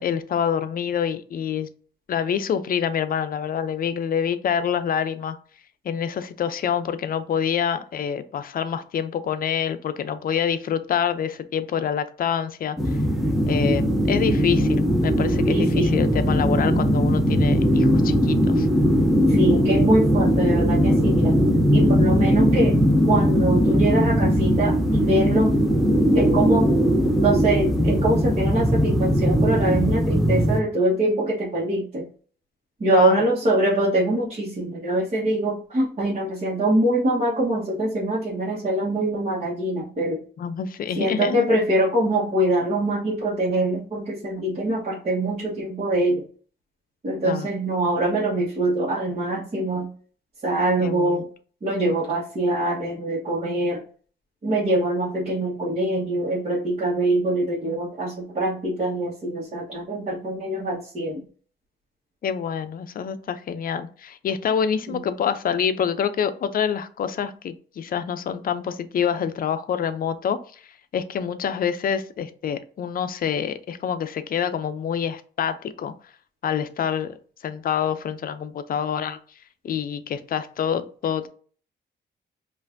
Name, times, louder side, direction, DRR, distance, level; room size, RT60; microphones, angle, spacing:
voice 1, 0.0-1.7 2.1-5.4 5.8-12.8 13.5-18.7 32.9-33.2 40.4-41.5 47.2-47.5 50.8-51.2 62.2-70.4 70.9-75.9 76.4-77.2 77.4-79.2 79.6-81.3, left 8 dB, 50° left, 11 dB, 0.5 m, -26 dB
sound 1, 12.8-30.6, equal, ahead, 0.6 m, -19 dB
voice 2, 15.5-15.9 19.3-21.3 21.7-22.8 23.1-25.6 26.1-26.7 27.2-32.1 32.8-40.2 40.9-46.2 47.0-49.9 50.4-51.3 51.6-53.8 54.4-61.2 64.9-65.0, right 1 dB, 35° right, -7 dB, 1.2 m, -23 dB
5.3 x 2.5 x 2.6 m, 0.43 s
cardioid pair, 115°, 19 cm